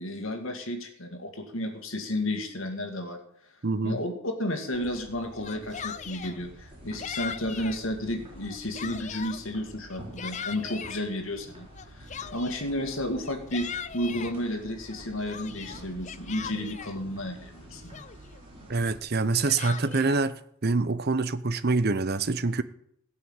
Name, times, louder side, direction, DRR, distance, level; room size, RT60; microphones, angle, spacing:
voice 1, 0.0-3.2 3.8-17.9, left 1 dB, 60° left, 2.2 m, -32 dB
voice 2, 3.6-4.0 18.7-22.6, right 3 dB, 45° right, 0.7 m, -26 dB
sound 1, 4.7-19.0, right 1 dB, 25° right, 4.3 m, -48 dB
Yell, 5.3-6.4 7.0-7.8 8.3-9.4 9.9-11.0 11.7-12.7 13.2-14.3 14.9-17.0 17.5-17.6 17.9-18.4 19.2-20.2, left 7 dB, 30° left, 0.5 m, -39 dB
16.5 x 5.8 x 8.9 m
head